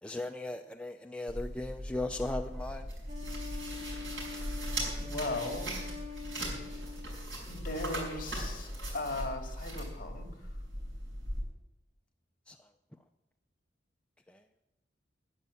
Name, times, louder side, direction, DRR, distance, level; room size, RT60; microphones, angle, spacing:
voice 1, 0.0-2.9 12.5-12.7 14.3-14.4, left 2 dB, 5° left, 4 dB, 0.4 m, -37 dB
sound 1, 1.3-11.4, right 1 dB, 75° right, 5.4 m, -39 dB
Wind instrument woodwind instrument, 3.1-7.4, left 5 dB, 35° right, 2.9 m, -45 dB
voice 2, 5.0-5.9 6.5-6.8 7.5-10.6, left 2 dB, 50° left, 4 dB, 2.1 m, -38 dB
10.5 x 10.0 x 7.0 m, 0.98 s
head